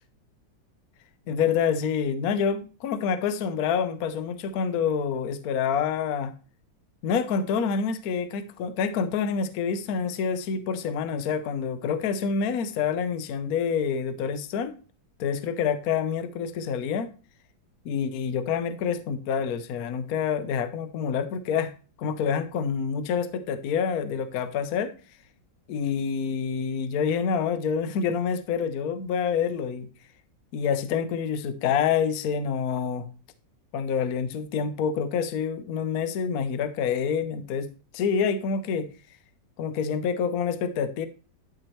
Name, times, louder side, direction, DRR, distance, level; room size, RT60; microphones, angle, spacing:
voice 1, 1.3-6.3 7.0-14.7 15.2-17.1 17.8-21.7 22.0-24.9 25.7-29.9 30.5-33.1 33.7-37.7 37.9-38.9 39.6-41.1, left 6 dB, 60° left, 1.0 m, -27 dB
11.5 x 4.8 x 3.1 m
omnidirectional pair, 2.1 m